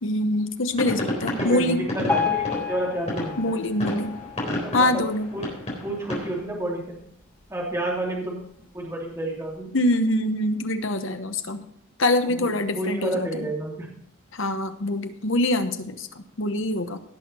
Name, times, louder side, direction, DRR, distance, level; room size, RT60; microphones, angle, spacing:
voice 1, 0.0-1.8 3.4-4.2 4.7-5.3 9.7-11.6 12.0-13.5 14.3-17.0, left 1 dB, 60° left, 8 dB, 1.1 m, -24 dB
sound 1, 0.7-6.4, left 1 dB, 30° left, 3.7 m, -31 dB
voice 2, 1.3-3.6 4.4-4.9 5.3-5.4 5.8-7.0 7.5-8.4 8.7-9.7 12.3-13.9, right 1 dB, 15° right, -3 dB, 3.0 m, -30 dB
Piano, 2.1-5.2 5.7-5.9 6.2-6.3 7.0-7.1 7.6-7.7, left 6 dB, 10° left, 4.0 m, -30 dB
17.5 x 6.6 x 4.4 m, 0.67 s
head